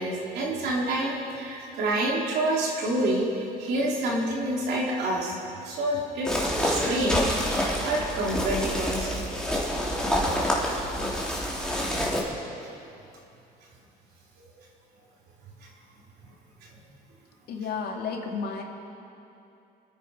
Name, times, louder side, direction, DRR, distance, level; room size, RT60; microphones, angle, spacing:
voice 1, 0.0-5.4 5.6-9.3 11.1-11.2 14.6-14.7 15.6-15.7 16.6-16.7, right 1 dB, 75° right, -3 dB, 3.3 m, -28 dB
sound 1, 6.2-12.2, equal, 5° left, 2.7 m, -27 dB
voice 2, 17.5-18.6, left 5 dB, 65° left, 2 dB, 2.2 m, -32 dB
25.5 x 9.7 x 4.9 m, 2.7 s
cardioid pair, 110°, 17 cm